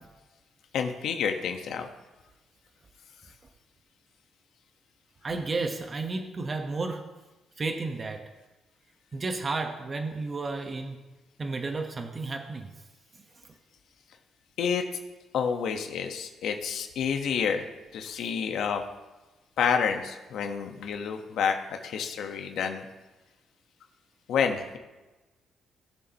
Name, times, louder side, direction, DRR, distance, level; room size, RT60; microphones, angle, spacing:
voice 1, 0.7-1.9 14.6-14.8 15.3-17.7 17.9-18.8 19.6-22.8 24.3-24.8, left 7 dB, 75° left, 5 dB, 1.3 m, -29 dB
voice 2, 5.2-7.1 7.6-8.3 9.1-11.0 11.4-12.7, right 3 dB, 35° right, 5 dB, 1.2 m, -32 dB
19.0 x 6.9 x 3.0 m, 1.1 s
cardioid pair, 90°, 0 cm